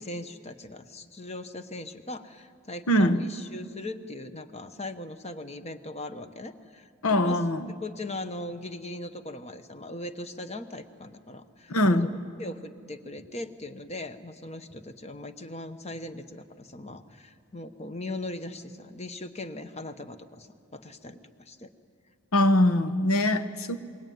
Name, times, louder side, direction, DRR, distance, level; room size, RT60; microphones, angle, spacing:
voice 1, 0.0-7.4 7.7-12.0 12.4-21.7, left 2 dB, 30° left, 9 dB, 1.1 m, -39 dB
voice 2, 2.9-3.2 7.0-7.7 11.7-12.1 22.3-23.8, left 1 dB, 85° left, 10 dB, 1.2 m, -22 dB
27.5 x 22.0 x 9.4 m, 2.3 s
head